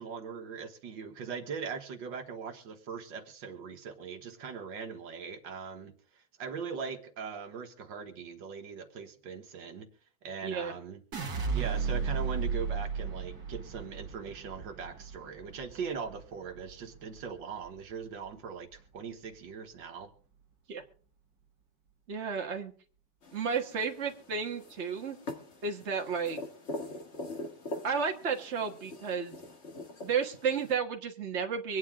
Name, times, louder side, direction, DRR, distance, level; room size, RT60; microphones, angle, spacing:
voice 1, 0.0-9.9 10.2-11.0 11.5-20.1, right 6 dB, 80° right, 5 dB, 2.0 m, -40 dB
voice 2, 10.4-10.7 20.7-20.8 22.1-22.7 23.3-25.2 25.6-26.4 27.8-29.4 30.0-31.8, right 6 dB, 40° right, 3 dB, 1.7 m, -32 dB
sound 1, 11.1-17.3 17.7-18.3, right 5 dB, 55° right, 2.1 m, -35 dB
sound 2, 23.2-30.7, left 2 dB, 40° left, 1.7 m, -44 dB
24.5 x 9.6 x 3.7 m, 0.43 s
omnidirectional pair, 2.0 m